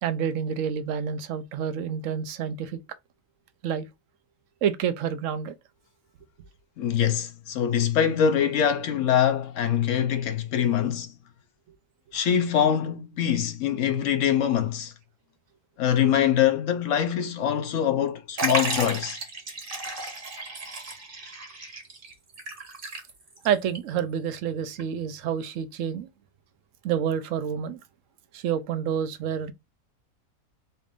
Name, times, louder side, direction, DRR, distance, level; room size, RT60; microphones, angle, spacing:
voice 1, 0.0-2.8 3.6-3.9 4.6-5.5 23.4-26.1 26.8-27.8 28.3-29.5, right 8 dB, 70° right, 1.0 m, -28 dB
voice 2, 6.8-11.1 12.1-14.9 15.8-19.2, left 9 dB, 65° left, 0.9 m, -24 dB
Liquid, 18.4-23.5 23.8-23.9 24.8-24.9, right 3 dB, 40° right, 1.2 m, -33 dB
4.1 x 2.5 x 3.5 m
omnidirectional pair, 1.5 m